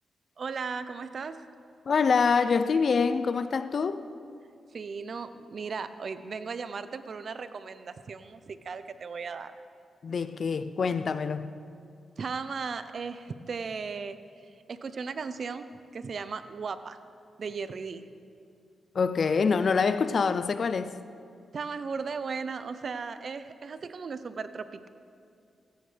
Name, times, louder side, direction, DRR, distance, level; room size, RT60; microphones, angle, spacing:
voice 1, 0.4-1.4 4.7-9.5 12.2-14.2 14.4-15.7 15.9-17.0 17.4-18.1 21.5-24.9, right 5 dB, 60° right, 0.7 m, -36 dB
voice 2, 1.9-4.1 10.0-11.6 18.9-21.0, left 5 dB, 55° left, 0.6 m, -25 dB
18.5 x 17.0 x 3.4 m
cardioid pair, 80°, 0 cm